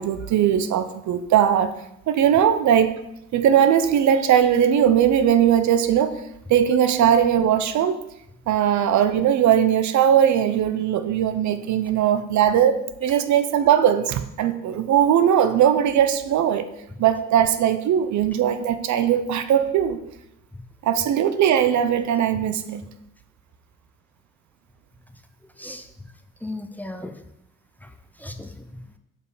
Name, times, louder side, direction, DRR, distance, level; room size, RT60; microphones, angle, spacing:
voice 1, 0.0-1.7 2.1-2.9 3.3-6.2 6.5-8.0 8.5-16.7 17.0-20.0 20.8-22.8, right 9 dB, 70° right, 11 dB, 0.7 m, -19 dB
voice 2, 25.6-25.9 26.4-27.2 27.8-27.9 28.2-28.9, left 2 dB, 5° left, 7 dB, 0.5 m, -36 dB
5.4 x 5.2 x 4.9 m, 0.81 s
cardioid pair, 90°, 30 cm